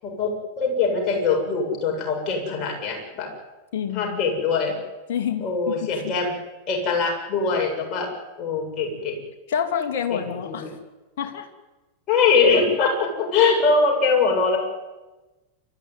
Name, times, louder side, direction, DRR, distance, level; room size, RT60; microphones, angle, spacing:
voice 1, 0.0-3.3 3.9-4.7 5.4-6.3 6.7-8.1 8.4-9.1 10.1-10.2 10.5-10.7 12.1-14.6, left 4 dB, 35° left, 1 dB, 7.6 m, -22 dB
voice 2, 3.7-4.2 5.1-6.2 9.5-10.7 11.2-11.5, left 8 dB, 55° left, 5 dB, 3.0 m, -28 dB
29.0 x 14.0 x 9.6 m, 1.1 s
figure-of-eight pair, 90°, 0 cm